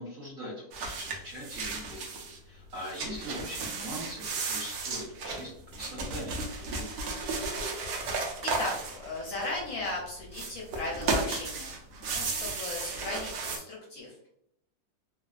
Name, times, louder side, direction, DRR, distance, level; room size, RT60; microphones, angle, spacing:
voice 1, 0.0-2.0 2.4-6.8, equal, 55° right, -6 dB, 1.3 m, -41 dB
sound 1, 0.7-2.4 2.7-9.7 10.3-13.6, right 3 dB, 75° right, 0.9 m, -34 dB
voice 2, 8.4-14.3, left 2 dB, 65° left, -2 dB, 0.9 m, -37 dB
3.0 x 2.0 x 2.4 m, 0.75 s
omnidirectional pair, 2.0 m